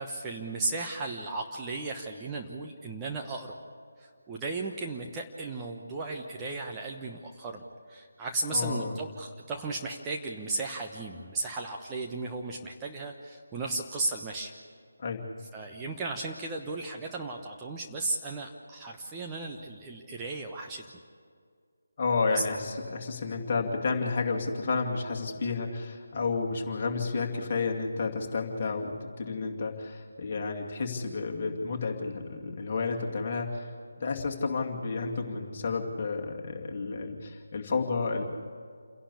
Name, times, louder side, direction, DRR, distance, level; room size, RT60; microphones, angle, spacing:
voice 1, 0.0-3.6 4.0-14.5 15.5-20.9 22.3-22.4, right 3 dB, 15° right, 0 dB, 1.1 m, -35 dB
voice 2, 8.5-9.0 15.0-15.2 22.0-33.7 34.0-38.2, left 4 dB, 35° left, 1 dB, 2.4 m, -31 dB
29.0 x 11.5 x 8.4 m, 2.1 s
figure-of-eight pair, 155°, 0 cm